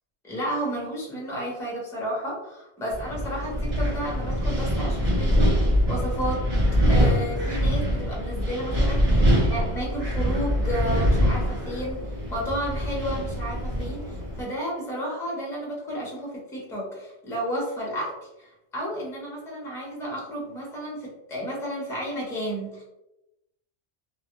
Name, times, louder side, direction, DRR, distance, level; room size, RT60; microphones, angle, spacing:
voice 1, 0.2-6.4 6.9-12.0 12.3-22.8, equal, 5° left, -4 dB, 0.6 m, -32 dB
Wind, 2.9-14.4, equal, 35° right, 0.8 m, -24 dB
2.4 x 2.3 x 2.8 m, 0.92 s
omnidirectional pair, 1.2 m